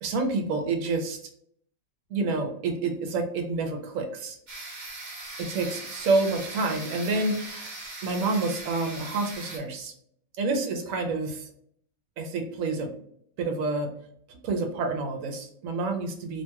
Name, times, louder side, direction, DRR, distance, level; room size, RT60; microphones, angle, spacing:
voice 1, 0.0-1.2 2.1-4.4 5.4-7.7 8.0-9.9 10.4-11.5 12.2-12.9 13.4-14.0 14.3-16.4, right 3 dB, 80° right, 3 dB, 1.0 m, -28 dB
sound 1, 4.5-9.6, right 2 dB, 40° right, 0.7 m, -40 dB
2.8 x 2.3 x 2.8 m, 0.66 s
omnidirectional pair, 1.4 m